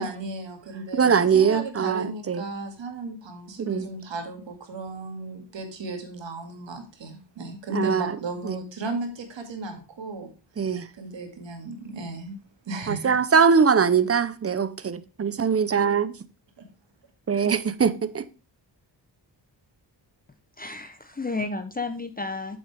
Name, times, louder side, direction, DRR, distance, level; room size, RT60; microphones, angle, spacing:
voice 1, 0.0-10.3 11.0-12.4 12.7-13.2 16.6-16.7, right 3 dB, 85° right, 2.3 m, -35 dB
voice 2, 1.0-2.5 3.6-3.9 7.7-8.1 8.4-8.6 10.6-10.9 12.9-16.2 17.3-18.3, right 6 dB, 30° right, 0.8 m, -22 dB
voice 3, 20.6-22.6, left 3 dB, 20° left, 0.8 m, -32 dB
8.5 x 7.2 x 3.5 m
wide cardioid pair, 120°, 43 cm